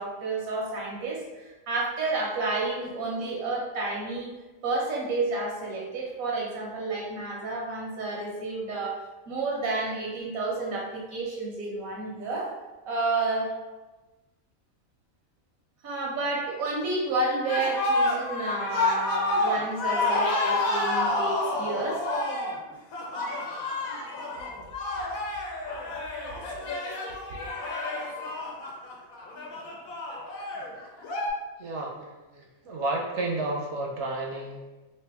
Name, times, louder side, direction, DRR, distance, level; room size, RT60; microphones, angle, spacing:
voice 1, 0.0-4.3 4.6-9.0 9.3-12.5 12.8-13.5 15.8-22.0 27.3-27.4, right 3 dB, 85° right, -2 dB, 1.3 m, -30 dB
sound 1, 17.5-31.3, left 2 dB, 90° left, 1.1 m, -29 dB
voice 2, 31.6-34.9, right 2 dB, 65° right, 0 dB, 0.8 m, -32 dB
3.2 x 2.6 x 3.4 m, 1.1 s
omnidirectional pair, 1.4 m